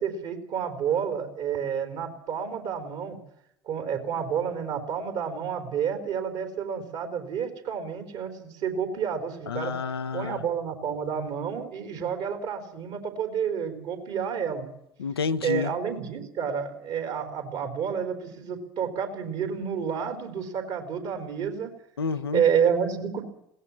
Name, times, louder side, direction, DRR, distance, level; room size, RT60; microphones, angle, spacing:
voice 1, 0.0-3.2 3.6-9.7 10.1-14.7 15.4-21.7 22.3-23.2, right 7 dB, 60° right, 4.1 m, -29 dB
voice 2, 9.5-10.4 15.0-15.7 22.0-22.4, left 5 dB, 85° left, 0.7 m, -29 dB
21.0 x 18.0 x 7.2 m
hypercardioid pair, 60°, 12 cm